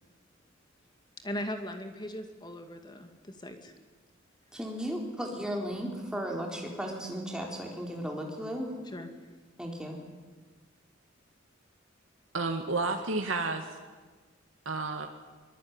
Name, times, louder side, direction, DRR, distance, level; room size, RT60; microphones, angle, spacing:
voice 1, 1.2-3.7 8.9-9.1, left 1 dB, 20° left, 6 dB, 2.3 m, -39 dB
voice 2, 4.5-8.8 9.6-10.0, equal, 5° right, 0 dB, 4.1 m, -35 dB
voice 3, 12.3-13.8 14.7-15.1, right 3 dB, 85° right, 4 dB, 1.9 m, -31 dB
23.5 x 21.0 x 9.7 m, 1.4 s
head